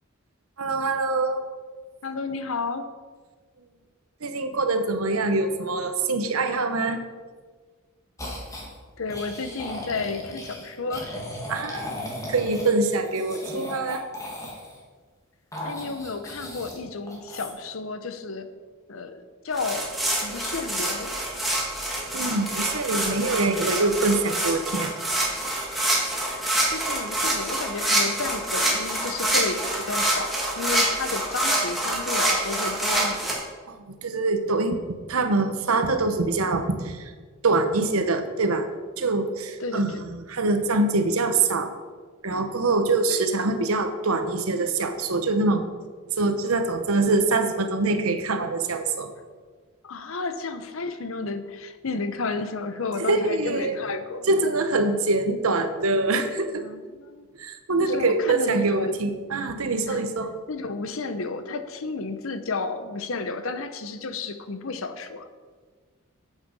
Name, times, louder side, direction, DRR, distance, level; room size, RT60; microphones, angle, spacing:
voice 1, 0.6-1.4 4.2-7.0 11.5-11.9 12.3-14.0 22.1-24.9 33.7-33.8 34.0-34.8 35.1-37.1 37.4-38.7 39.0-41.7 42.2-45.6 46.2-49.1 53.0-53.8 54.3-56.6 57.4-60.3, right 3 dB, 80° right, 8 dB, 1.0 m, -24 dB
voice 2, 2.0-2.9 9.0-11.2 15.6-18.5 18.9-20.0 20.2-21.1 25.7-25.9 26.7-33.4 39.6-40.0 43.1-43.2 49.8-54.3 56.6-57.3 57.8-59.0 59.9-60.0 60.5-65.3, left 4 dB, 70° left, 10 dB, 0.8 m, -32 dB
sound 1, 8.2-8.7 9.1-14.8 15.5-16.8 17.1-17.5, left 1 dB, 15° left, 1.8 m, -36 dB
sound 2, 19.6-33.3, right 1 dB, ahead, 2.0 m, -26 dB
8.5 x 8.2 x 5.4 m, 1.5 s
head